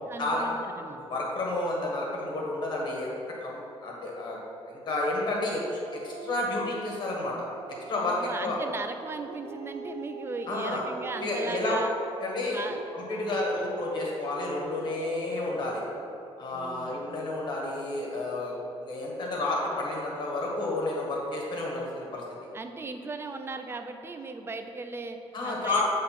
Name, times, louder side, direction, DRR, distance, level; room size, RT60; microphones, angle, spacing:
voice 1, 0.1-1.0 8.0-11.9 12.5-12.8 13.1-13.4 16.5-16.9 22.5-25.2 25.4-25.8, right 3 dB, 25° right, 6 dB, 0.5 m, -37 dB
voice 2, 1.0-3.1 3.4-4.4 4.7-5.8 6.0-7.3 7.9-8.6 10.5-10.8 11.2-11.8 12.2-12.6 12.9-15.8 16.4-18.5 18.8-22.2 25.3-25.8, left 2 dB, 45° left, -2 dB, 1.7 m, -31 dB
Dog, 5.9-8.7 9.1-12.2 12.6-16.2, right 4 dB, 80° right, 0.6 m, -43 dB
7.7 x 3.7 x 5.9 m, 2.7 s
cardioid pair, 135°, 10 cm